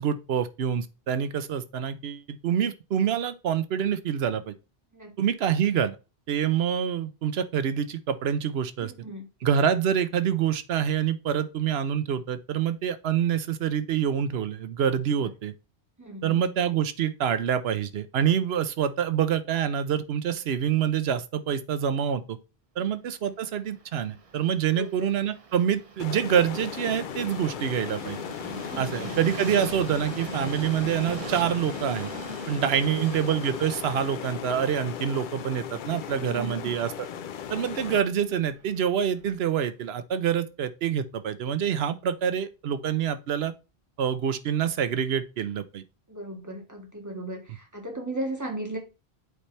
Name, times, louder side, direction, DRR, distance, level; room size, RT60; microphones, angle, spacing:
voice 1, 0.0-4.5 5.2-6.0 6.3-8.9 9.4-15.5 16.2-22.4 22.8-28.2 28.8-32.1 32.5-37.1 37.5-43.5 44.0-45.8, right 8 dB, 75° right, 0.9 m, -26 dB
voice 2, 8.8-9.3 15.1-15.3 16.0-16.4 22.8-22.9 24.7-25.1 28.7-29.2 32.7-33.1 36.1-36.7 46.1-48.8, right 1 dB, 15° right, 1.6 m, -36 dB
Train, 23.5-39.6, right 5 dB, 40° right, 0.7 m, -43 dB
sound 1, 26.0-38.0, left 9 dB, 60° left, 0.6 m, -37 dB
8.2 x 3.3 x 4.3 m
omnidirectional pair, 1.1 m